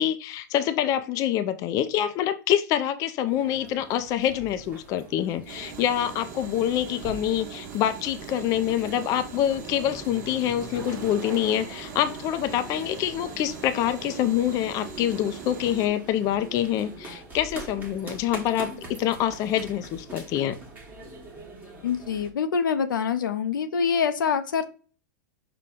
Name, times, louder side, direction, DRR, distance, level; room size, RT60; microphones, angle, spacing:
voice 1, 0.0-20.6, left 11 dB, 35° left, 0.4 m, -26 dB
sound 1, 3.3-22.3, right 2 dB, 15° right, 1.1 m, -44 dB
sound 2, 5.5-15.9, right 6 dB, 40° right, 1.0 m, -41 dB
sound 3, 10.0-17.0, right 5 dB, 65° right, 1.0 m, -46 dB
voice 2, 21.8-24.7, left 6 dB, 85° left, 0.6 m, -25 dB
5.2 x 2.2 x 3.6 m
hypercardioid pair, 125°, 11 cm